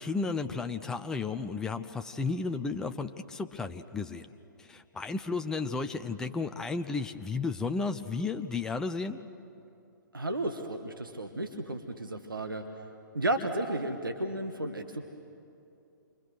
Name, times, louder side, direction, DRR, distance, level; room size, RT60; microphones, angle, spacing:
voice 1, 0.0-4.3 4.6-9.2, left 4 dB, 5° left, 7 dB, 0.5 m, -33 dB
voice 2, 10.1-12.6 13.1-15.0, right 1 dB, 80° right, 6 dB, 1.5 m, -33 dB
28.0 x 24.0 x 6.4 m, 2.7 s
figure-of-eight pair, 125°, 11 cm